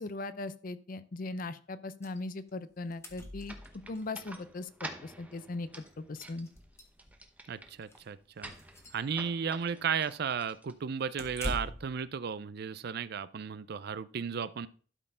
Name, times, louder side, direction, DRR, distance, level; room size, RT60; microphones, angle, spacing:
voice 1, 0.0-3.6 3.9-5.7 6.0-6.5, left 2 dB, 45° left, 14 dB, 0.5 m, -39 dB
sound 1, 2.0-2.2 2.5-2.6 2.8-4.0 5.3-5.4 5.8-5.9 6.4-7.3 7.8-8.0 8.5-9.0 11.2-12.0, left 1 dB, 15° left, 1.3 m, -42 dB
sound 2, 3.5-11.3, right 1 dB, 10° right, 0.9 m, -49 dB
voice 2, 7.5-8.5 8.9-14.7, right 6 dB, 55° right, 15 dB, 0.4 m, -34 dB
12.0 x 4.4 x 5.6 m, 0.41 s
head